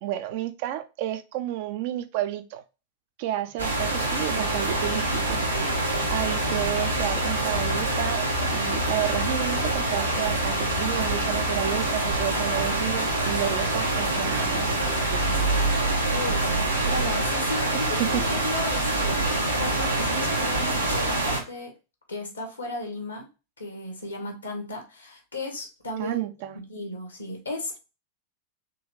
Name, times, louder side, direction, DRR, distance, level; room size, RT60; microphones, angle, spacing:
voice 1, 0.0-2.6 3.2-5.4 6.1-15.5 17.7-18.2 26.0-26.6, right 13 dB, 50° right, 0.5 m, -31 dB
sound 1, 3.6-21.4, right 2 dB, 80° right, 1.0 m, -25 dB
voice 2, 16.1-21.7 22.1-23.3 23.6-26.3 26.5-27.8, left 1 dB, 80° left, 1.1 m, -35 dB
3.8 x 3.1 x 3.1 m
figure-of-eight pair, 90°, 0 cm